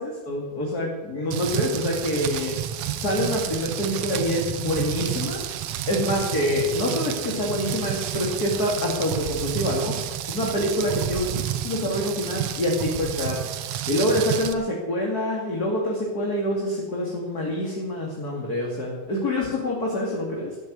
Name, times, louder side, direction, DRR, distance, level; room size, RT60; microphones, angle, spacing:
voice 1, 0.0-2.6 3.0-5.4 5.9-10.0 10.3-11.3 11.6-13.4 13.9-20.6, left 1 dB, 35° left, -2 dB, 2.7 m, -26 dB
Rain, 1.3-14.5, right 11 dB, 70° right, 2.0 m, -30 dB
13.5 x 11.5 x 8.2 m, 1.2 s
omnidirectional pair, 3.3 m